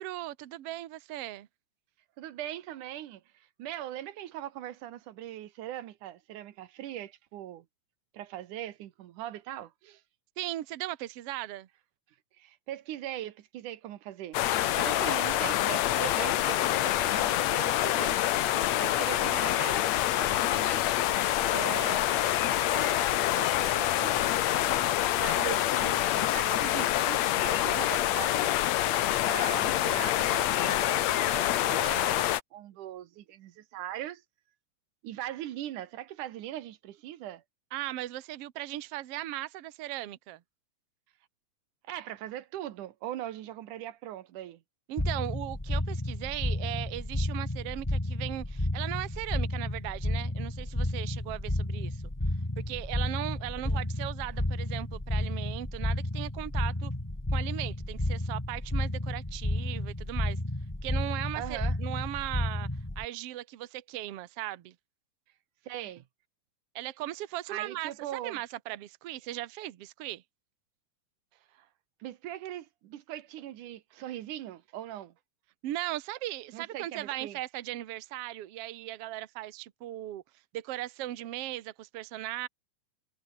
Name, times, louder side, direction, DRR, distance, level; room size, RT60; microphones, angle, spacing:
voice 1, 0.0-1.5 10.4-11.7 37.7-40.4 44.9-52.0 52.6-56.9 57.3-60.4 60.8-62.7 63.0-64.8 66.8-70.2 75.6-80.2 80.5-82.5, right 15 dB, 60° right, 1.9 m, -38 dB
voice 2, 2.2-7.7 8.1-10.0 12.4-18.2 18.8-20.8 21.5-22.0 22.7-23.1 23.3-24.2 24.5-28.4 29.3-34.2 35.0-37.4 41.9-44.6 53.6-53.8 61.4-61.8 65.6-66.0 67.5-68.4 71.5-71.7 72.0-75.1 76.5-77.4, right 12 dB, 85° right, 2.7 m, -40 dB
sound 1, 14.3-32.4, left 13 dB, 70° left, 2.1 m, -26 dB
sound 2, 45.0-63.0, left 1 dB, 5° left, 1.9 m, -32 dB
omnidirectional pair, 3.5 m